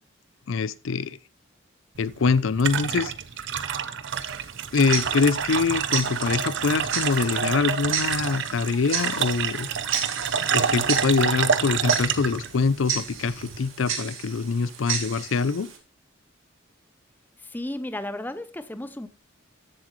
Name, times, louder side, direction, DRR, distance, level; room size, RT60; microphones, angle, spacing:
voice 1, 0.5-1.2 2.0-3.1 4.7-9.7 10.5-15.7, left 5 dB, 70° left, 0.5 m, -24 dB
sound 1, 2.0-13.7, right 7 dB, 60° right, 0.7 m, -28 dB
Tick-tock, 4.1-15.8, right 7 dB, 85° right, 2.4 m, -34 dB
voice 2, 17.4-19.1, left 1 dB, 10° left, 0.6 m, -34 dB
14.0 x 7.6 x 3.1 m
head